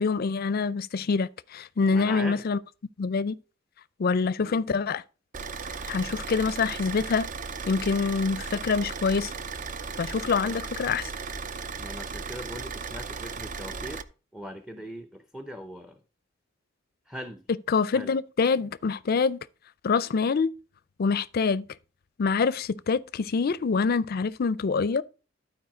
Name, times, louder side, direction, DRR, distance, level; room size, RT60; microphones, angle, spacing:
voice 1, 0.0-2.6 3.0-3.4 4.0-5.0 5.9-7.3 7.7-9.3 10.0-11.1 17.7-19.4 19.8-20.5 21.0-21.7 22.2-25.0, left 5 dB, 50° left, 0.4 m, -25 dB
voice 2, 1.9-2.4 4.4-4.6 10.3-10.6 11.8-14.1 14.3-16.0 17.1-17.4 17.9-18.1, equal, 5° right, 0.6 m, -40 dB
Car / Idling, 5.3-14.0, right 5 dB, 40° right, 0.5 m, -36 dB
12.0 x 4.7 x 4.9 m
head